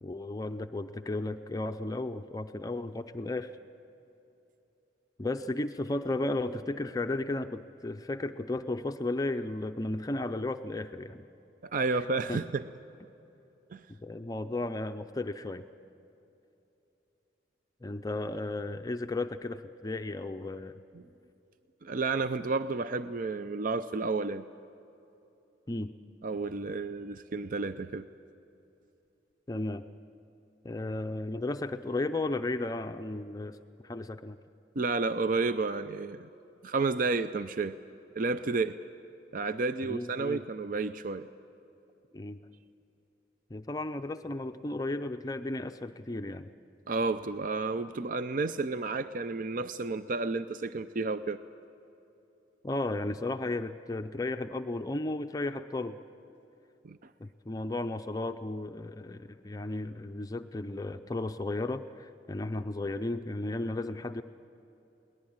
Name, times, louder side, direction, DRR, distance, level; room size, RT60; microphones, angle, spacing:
voice 1, 0.0-3.5 5.2-11.2 11.9-12.0 12.3-12.4 13.9-15.6 17.8-20.8 25.7-25.9 29.5-29.8 30.6-33.6 33.8-34.4 39.8-40.4 42.1-42.4 43.5-46.5 52.6-56.0 57.2-64.2, left 2 dB, 20° left, 8 dB, 0.5 m, -34 dB
voice 2, 11.6-12.6 13.7-13.8 21.8-24.5 26.2-28.1 34.8-36.3 36.6-37.8 38.2-38.8 39.3-41.3 46.9-51.4 56.8-57.1, right 3 dB, 50° right, 11 dB, 0.5 m, -31 dB
22.0 x 19.0 x 8.8 m, 2.9 s
head